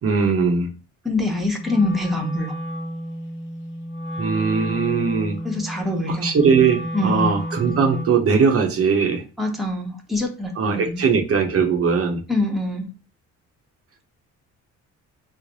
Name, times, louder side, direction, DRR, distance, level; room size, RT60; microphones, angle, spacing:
voice 1, 0.0-0.7 4.2-5.4 6.1-9.3 10.6-12.2, right 5 dB, 50° right, 2 dB, 0.7 m, -20 dB
voice 2, 1.0-2.5 5.4-6.3 6.9-7.3 9.4-11.0 12.3-12.9, left 2 dB, ahead, 0 dB, 0.8 m, -24 dB
Wind instrument woodwind instrument, 1.6-8.3, equal, 40° left, 0.8 m, -31 dB
3.2 x 2.1 x 3.8 m, 0.33 s
cardioid pair, 90°, 30 cm